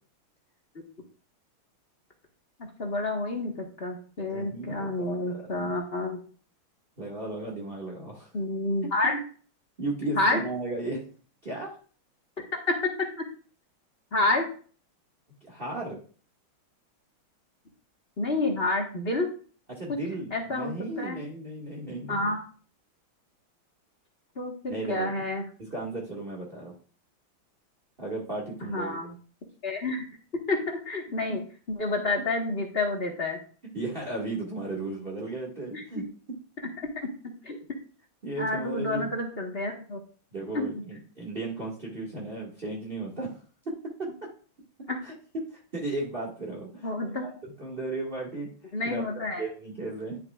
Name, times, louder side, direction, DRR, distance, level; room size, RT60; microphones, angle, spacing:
voice 1, 2.8-6.2 8.3-9.2 10.2-10.4 12.7-12.8 14.1-14.4 18.2-19.3 20.3-21.2 22.1-22.4 24.3-25.4 28.6-29.1 29.6-30.0 30.5-31.4 31.7-33.4 35.7-35.8 36.8-37.1 37.4-37.6 38.4-40.0 40.5-40.8 44.9-45.0 46.8-47.3 48.7-49.4, left 2 dB, 30° left, 1 dB, 1.6 m, -29 dB
voice 2, 4.2-5.7 7.0-8.3 9.8-11.0 11.4-11.8 15.4-16.0 19.7-22.3 24.7-25.1 25.6-26.7 28.0-29.0 31.3-31.5 33.7-36.0 38.2-39.1 40.3-43.4 44.0-44.1 45.0-45.1 45.5-46.9 47.2-47.3 47.6-48.5 48.8-50.2, right 2 dB, 25° right, -2 dB, 2.1 m, -35 dB
11.5 x 7.0 x 2.5 m, 0.40 s
omnidirectional pair, 2.3 m